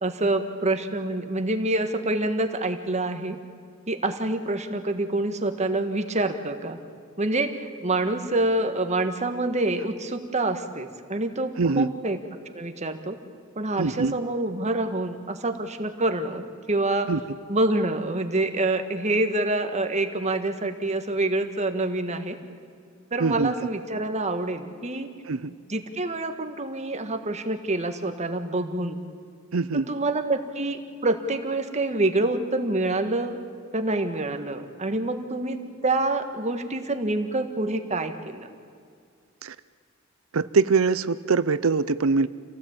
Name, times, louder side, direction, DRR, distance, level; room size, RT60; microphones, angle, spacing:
voice 1, 0.0-3.4 3.9-6.8 7.2-12.2 12.5-13.2 13.5-17.1 17.5-22.4 23.1-25.1 25.7-29.0 29.7-33.4 33.7-38.5, right 2 dB, 35° right, 7 dB, 1.6 m, -26 dB
voice 2, 11.6-11.9 13.8-14.1 17.1-17.2 23.2-23.5 25.3-25.5 29.5-29.9 39.4-39.6 40.3-42.3, right 4 dB, 85° right, 15 dB, 0.7 m, -23 dB
27.5 x 17.5 x 8.8 m, 2.2 s
head